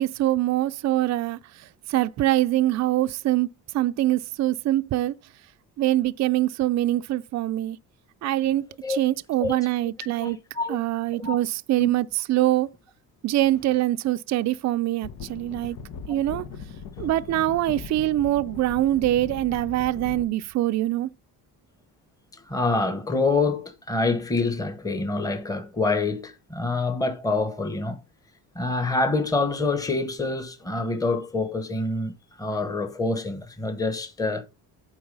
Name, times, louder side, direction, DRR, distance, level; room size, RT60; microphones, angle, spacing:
voice 1, 0.0-3.5 3.7-5.1 5.8-7.8 8.2-10.4 10.7-12.7 13.2-15.8 16.1-16.4 17.0-21.1, right 14 dB, 50° right, 0.5 m, -24 dB
voice 2, 10.2-10.8 11.2-11.3 11.8-11.9 12.4-12.5 22.3-28.0 28.5-32.1 32.4-34.4, left 3 dB, 10° left, 1.1 m, -26 dB
sound 1, 15.0-20.3, left 5 dB, 75° left, 1.1 m, -39 dB
8.7 x 4.1 x 5.4 m
cardioid pair, 135°, 35 cm